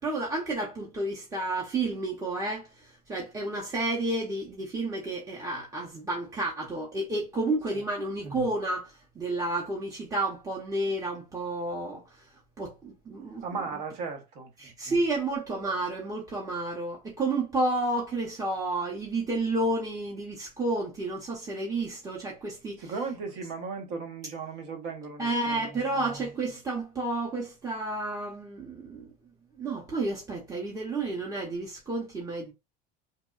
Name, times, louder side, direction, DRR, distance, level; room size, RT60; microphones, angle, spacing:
voice 1, 0.0-2.7 3.1-12.0 12.6-13.5 14.6-22.9 25.2-29.0 29.6-32.5, right 2 dB, 15° right, 0.6 m, -31 dB
voice 2, 13.4-14.5 22.8-25.9, right 4 dB, 75° right, 0.9 m, -36 dB
2.8 x 2.1 x 2.2 m
cardioid pair, 135°, 21 cm